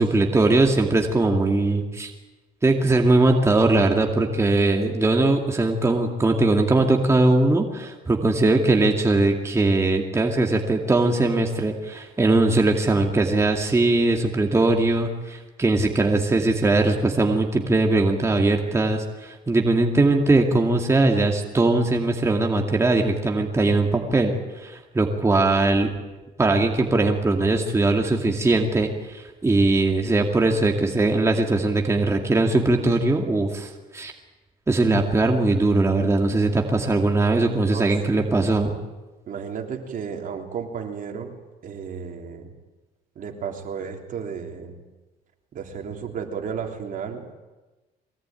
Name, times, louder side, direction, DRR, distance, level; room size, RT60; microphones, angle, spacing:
voice 1, 0.0-2.1 2.6-25.9 26.4-34.1 34.7-38.7, right 2 dB, 15° right, 2 dB, 2.4 m, -20 dB
voice 2, 37.7-38.5 39.3-41.3 41.6-42.5 43.2-44.7 45.5-47.2, right 6 dB, 50° right, 3 dB, 3.6 m, -33 dB
23.5 x 18.5 x 9.3 m, 1.2 s
cardioid pair, 110°, 17 cm